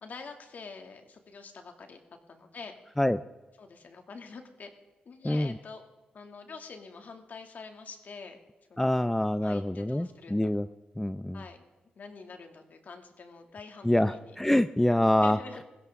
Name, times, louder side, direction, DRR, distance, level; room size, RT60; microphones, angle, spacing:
voice 1, 0.0-2.0 2.3-2.8 3.6-4.7 5.0-5.8 6.1-8.4 8.7-9.0 9.4-10.5 11.3-11.6 12.0-14.4 14.9-15.6, left 4 dB, 60° left, 5 dB, 2.4 m, -46 dB
voice 2, 8.8-10.7 11.0-11.4 13.8-15.4, left 1 dB, 10° left, 12 dB, 0.6 m, -25 dB
21.5 x 16.0 x 3.7 m, 1.2 s
cardioid pair, 60°, 3 cm